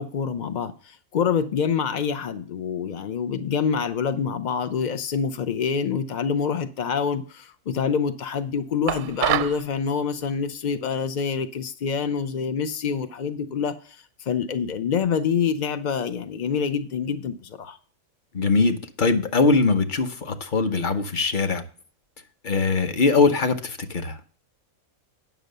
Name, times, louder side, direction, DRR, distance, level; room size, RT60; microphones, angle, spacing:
voice 1, 0.0-13.8 14.3-17.8, left 6 dB, 70° left, 0.4 m, -26 dB
sound 1, 8.9-9.6, right 12 dB, 90° right, 1.1 m, -25 dB
voice 2, 18.3-21.6 22.4-24.2, left 4 dB, 40° left, 0.9 m, -21 dB
9.4 x 6.2 x 6.6 m
omnidirectional pair, 1.5 m